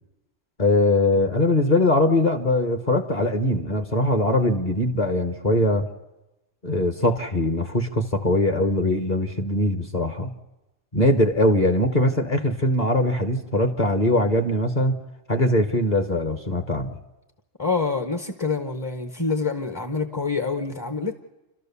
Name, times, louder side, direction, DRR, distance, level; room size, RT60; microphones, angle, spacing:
voice 1, 0.6-5.9 6.6-10.3 10.9-15.0 15.3-17.0, left 1 dB, 35° left, 6 dB, 1.2 m, -21 dB
voice 2, 17.6-21.1, left 4 dB, 20° left, 6 dB, 0.8 m, -26 dB
30.0 x 13.0 x 7.0 m, 1.0 s
omnidirectional pair, 1.2 m